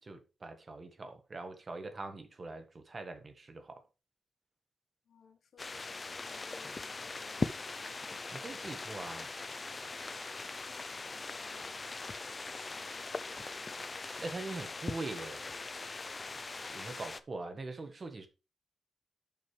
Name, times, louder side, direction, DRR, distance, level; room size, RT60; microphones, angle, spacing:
voice 1, 0.0-3.8 8.3-9.3 14.2-15.5 16.7-18.3, right 3 dB, 35° right, 1.5 m, -42 dB
voice 2, 5.1-7.5 10.5-12.0 12.7-13.5, left 6 dB, 75° left, 1.3 m, -61 dB
sound 1, 5.6-17.2, left 3 dB, 30° left, 0.5 m, -41 dB
11.5 x 6.0 x 3.3 m
wide cardioid pair, 150°, 0 cm